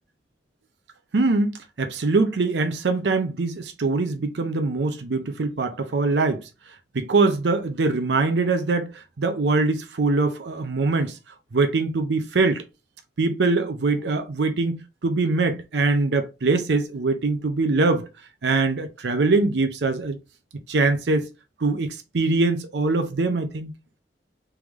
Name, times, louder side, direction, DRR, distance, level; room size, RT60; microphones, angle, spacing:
voice 1, 1.1-6.5 6.9-11.2 11.5-12.6 13.2-18.1 18.4-20.2 20.7-21.3 21.6-23.7, right 3 dB, 75° right, 0.6 m, -23 dB
3.5 x 3.4 x 3.0 m
head